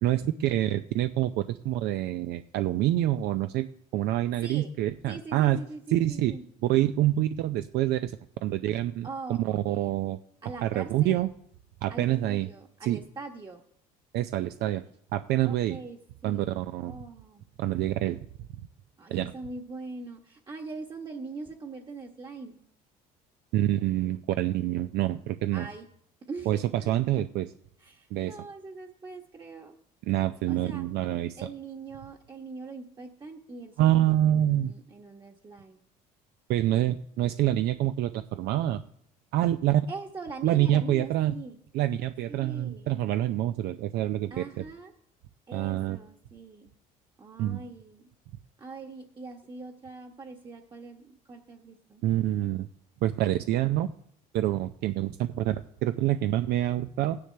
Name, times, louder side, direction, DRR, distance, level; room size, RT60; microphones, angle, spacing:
voice 1, 0.0-5.6 5.9-6.3 6.6-8.2 8.4-10.2 10.6-11.3 11.8-12.5 12.8-13.0 14.1-14.8 15.1-15.8 16.2-17.0 17.6-18.2 19.1-19.3 23.5-25.7 26.5-27.5 28.1-28.4 30.0-31.4 33.8-34.7 36.5-38.8 39.3-39.9 40.4-41.3 41.7-44.6 45.5-46.0 47.4-47.6 52.0-52.7 53.0-53.9 54.3-57.2, right 13 dB, 65° right, 10 dB, 0.5 m, -26 dB
voice 2, 5.1-6.4 9.0-9.9 10.4-11.2 11.9-13.6 15.4-16.5 16.8-17.4 19.0-22.6 25.5-25.8 26.3-26.9 27.8-29.8 30.5-30.8 31.4-35.8 39.9-41.6 42.3-42.9 44.3-44.9 45.5-46.7 47.2-48.0 48.6-52.0, right 3 dB, 25° right, 2 dB, 1.3 m, -42 dB
16.5 x 9.8 x 3.4 m, 0.70 s
supercardioid pair, 80°, 18 cm